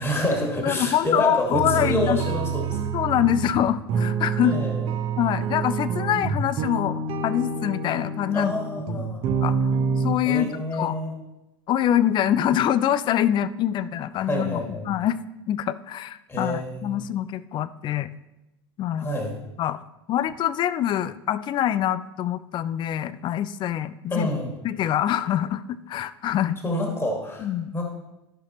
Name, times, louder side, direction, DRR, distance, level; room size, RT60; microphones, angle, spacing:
voice 1, 0.0-2.8 4.5-4.8 8.3-9.2 10.3-11.1 14.3-14.8 16.3-17.0 19.0-19.3 24.1-24.6 26.6-27.8, left 1 dB, 20° left, 1 dB, 2.0 m, -27 dB
voice 2, 0.6-2.2 2.9-4.5 5.2-8.6 8.9-9.0 9.4-9.6 10.0-11.0 11.7-15.2 15.5-18.1 18.8-19.1 19.6-19.8 20.1-24.3 24.6-26.6 27.4-27.7, left 11 dB, 35° left, 16 dB, 0.4 m, -25 dB
sound 1, 1.5-10.2, right 5 dB, 40° right, 1.1 m, -27 dB
14.0 x 5.7 x 3.0 m, 0.94 s
hypercardioid pair, 85°, 14 cm